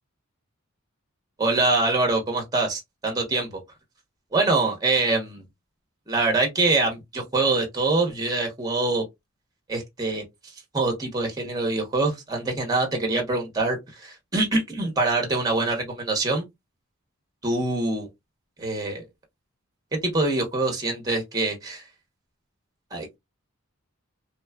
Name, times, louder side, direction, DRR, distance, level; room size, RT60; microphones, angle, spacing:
voice 1, 1.4-3.6 4.3-5.4 6.1-9.0 9.7-10.2 10.7-16.4 17.4-18.1 18.6-19.0 20.1-21.8 22.9-23.2, right 3 dB, 15° right, 0.8 m, -24 dB
2.9 x 2.2 x 2.2 m
head